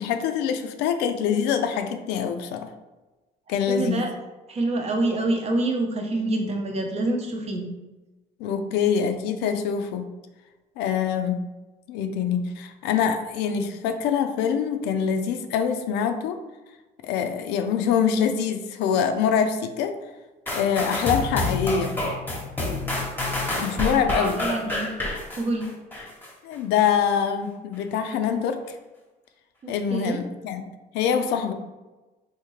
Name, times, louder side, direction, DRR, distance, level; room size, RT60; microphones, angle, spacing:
voice 1, 0.0-2.7 3.5-4.0 8.4-10.1 10.8-11.4 11.9-16.4 17.0-19.9 20.5-22.0 23.5-24.4 26.4-28.6 29.7-30.6 30.9-31.5, left 7 dB, 90° left, 7 dB, 0.4 m, -24 dB
voice 2, 3.5-4.1 4.5-7.6 23.9-24.9 25.4-25.7 29.9-30.2, right 2 dB, 40° right, 2 dB, 0.7 m, -26 dB
sound 1, 20.5-26.3 26.8-26.9, left 2 dB, 10° left, 0.9 m, -28 dB
3.5 x 2.7 x 3.1 m, 1.1 s
cardioid pair, 110°, 17 cm